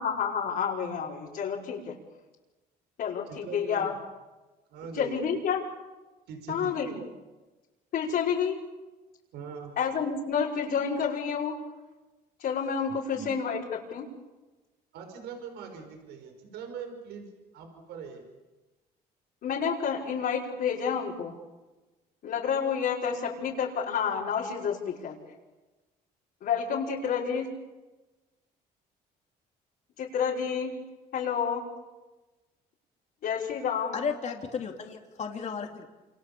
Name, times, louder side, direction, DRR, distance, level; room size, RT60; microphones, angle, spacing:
voice 1, 0.0-1.9 3.0-3.9 4.9-5.6 6.5-7.0 7.9-8.6 9.8-11.6 12.4-14.1 19.4-21.3 22.2-25.2 26.4-27.5 30.0-30.8 31.1-31.6 33.2-34.0, left 7 dB, 65° left, -5 dB, 5.5 m, -29 dB
voice 2, 3.3-3.9 4.7-5.2 6.3-7.0 9.3-9.8 13.1-13.4 14.9-18.3, right 6 dB, 80° right, 5 dB, 5.4 m, -42 dB
voice 3, 33.9-35.9, left 6 dB, 45° left, 3 dB, 3.2 m, -34 dB
28.0 x 27.5 x 7.1 m, 1.1 s
cardioid pair, 110°, 17 cm